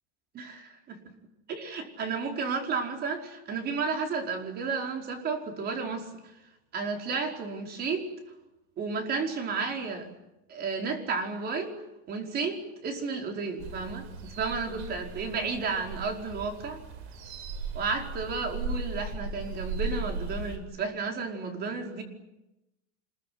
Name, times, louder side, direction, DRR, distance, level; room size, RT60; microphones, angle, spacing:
voice 1, 0.3-1.0 1.5-6.1 6.7-8.1 8.8-10.1 10.5-11.7 12.1-16.8 17.7-22.0, right 4 dB, 30° right, 4 dB, 4.9 m, -32 dB
sound 1, 13.6-20.6, right 3 dB, 75° right, 6.9 m, -37 dB
26.5 x 22.0 x 9.5 m, 0.92 s
supercardioid pair, 165°, 33 cm